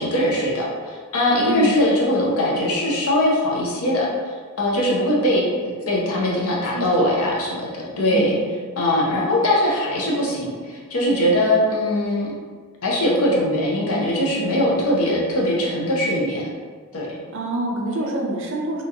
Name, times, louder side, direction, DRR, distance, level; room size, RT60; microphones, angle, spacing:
voice 1, 0.0-4.1 4.6-8.4 8.8-12.3 12.8-16.4 16.9-17.1, left 1 dB, 70° left, -3 dB, 0.7 m, -21 dB
voice 2, 1.4-1.8 6.7-7.3 7.9-8.4 17.3-18.8, right 1 dB, 60° right, 0 dB, 0.5 m, -27 dB
2.9 x 2.8 x 2.4 m, 1.5 s
head